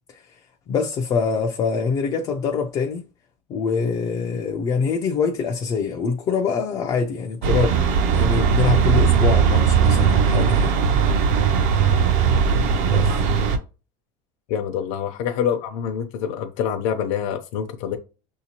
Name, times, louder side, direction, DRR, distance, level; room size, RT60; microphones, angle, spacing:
voice 1, 0.7-3.0 3.5-10.8 12.9-13.2, left 5 dB, 25° left, 0.4 m, -24 dB
sound 1, 7.4-13.6, right 6 dB, 45° right, 0.6 m, -18 dB
voice 2, 14.5-18.0, left 8 dB, 65° left, 0.7 m, -26 dB
6.5 x 2.8 x 2.8 m
cardioid pair, 180°, 17 cm